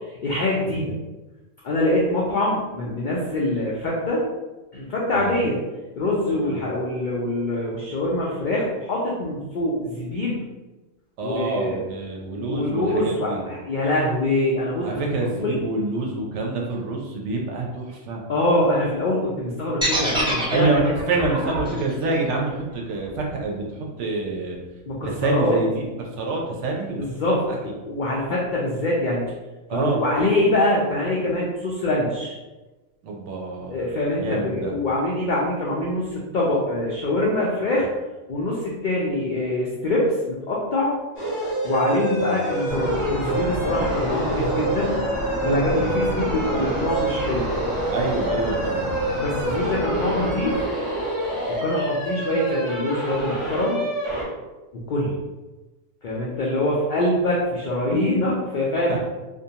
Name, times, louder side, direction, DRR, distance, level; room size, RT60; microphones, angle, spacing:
voice 1, 0.2-1.0 1.6-4.2 4.7-5.6 6.0-10.4 11.2-11.8 12.3-15.0 15.4-15.6 18.3-20.9 24.9-25.6 27.0-29.2 29.7-32.4 33.7-37.9 38.3-40.9 41.6-45.0 45.4-47.5 49.2-50.6 51.5-53.8 54.9-55.1 56.0-59.0, left 1 dB, 90° left, -4 dB, 0.4 m, -24 dB
voice 2, 6.3-6.6 11.2-13.4 14.8-18.2 20.5-24.6 25.0-25.9 26.2-27.6 29.7-30.0 33.0-33.8 34.1-34.7 41.9-42.3 45.8-46.1 46.5-46.7 47.9-48.9 58.9-59.1, right 3 dB, 70° right, 0 dB, 0.8 m, -27 dB
sound 1, 19.8-23.9, equal, 5° right, 0.4 m, -28 dB
sound 2, 41.2-54.2, right 1 dB, 30° left, 0.6 m, -27 dB
sound 3, 42.7-50.7, equal, 35° right, 0.7 m, -30 dB
2.6 x 2.2 x 2.7 m, 1.1 s
omnidirectional pair, 1.4 m